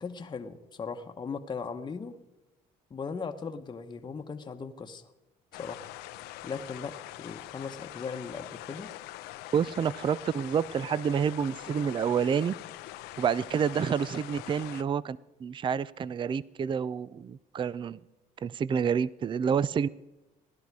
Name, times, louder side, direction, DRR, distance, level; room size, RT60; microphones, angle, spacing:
voice 1, 0.0-2.2 2.9-5.1 5.6-5.9 6.4-8.9, left 5 dB, 25° left, 5 dB, 1.0 m, -38 dB
sound 1, 5.5-14.8, left 16 dB, 85° left, 0.7 m, -43 dB
voice 2, 9.5-12.5 13.2-18.0 18.4-19.9, right 7 dB, 30° right, 21 dB, 0.4 m, -28 dB
16.5 x 11.5 x 4.7 m, 1.0 s
cardioid pair, 100°, 16 cm